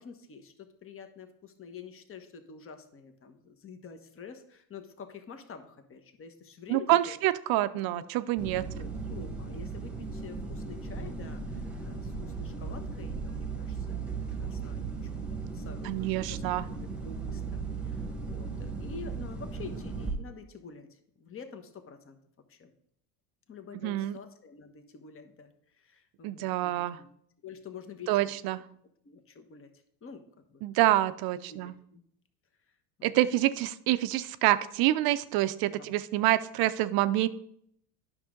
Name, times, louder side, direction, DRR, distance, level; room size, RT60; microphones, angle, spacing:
voice 1, 0.0-7.2 7.9-8.0 8.8-14.0 14.3-16.4 16.7-22.2 22.5-22.7 23.5-27.1 27.4-28.3 29.0-29.7 30.0-31.0 31.5-32.0 33.0-33.2 35.8-36.0, left 5 dB, 30° left, 7 dB, 1.2 m, -48 dB
voice 2, 6.7-8.7 15.8-16.6 23.8-24.2 26.2-27.0 28.1-28.6 30.6-31.7 33.0-37.3, right 15 dB, 55° right, 13 dB, 0.6 m, -27 dB
sound 1, 8.4-20.1, right 4 dB, ahead, 1.4 m, -37 dB
9.8 x 6.2 x 3.8 m, 0.70 s
supercardioid pair, 90°, 44 cm